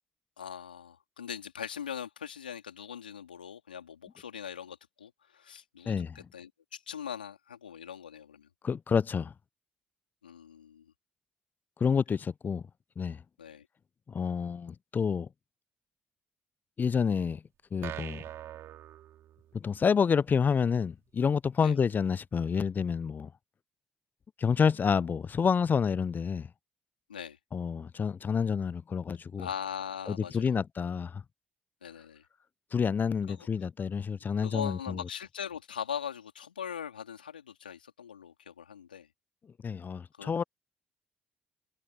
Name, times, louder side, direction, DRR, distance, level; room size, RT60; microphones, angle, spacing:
voice 1, 0.4-8.5 10.2-10.9 13.4-13.7 21.6-21.8 27.1-27.4 29.4-30.5 31.8-32.2 33.3-33.4 34.4-39.1 40.2-40.5, left 8 dB, 90° left, 3.7 m, -41 dB
voice 2, 5.9-6.2 8.6-9.3 11.8-12.6 13.0-13.2 14.1-15.3 16.8-17.4 17.7-18.2 19.5-23.3 24.4-26.5 27.5-29.5 30.1-31.2 32.7-35.0 39.6-40.4, left 6 dB, 40° left, 0.5 m, -28 dB
sound 1, 17.8-19.8, right 12 dB, 60° right, 4.3 m, -43 dB
figure-of-eight pair, 45°, 5 cm